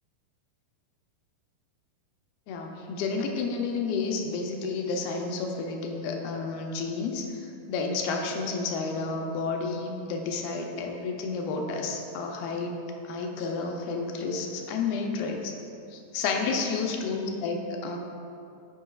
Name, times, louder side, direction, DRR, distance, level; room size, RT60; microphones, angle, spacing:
voice 1, 2.5-7.3 7.7-12.8 13.1-15.5 15.9-18.0, left 4 dB, 85° left, 2 dB, 2.4 m, -31 dB
12.0 x 5.4 x 2.4 m, 2.5 s
omnidirectional pair, 4.4 m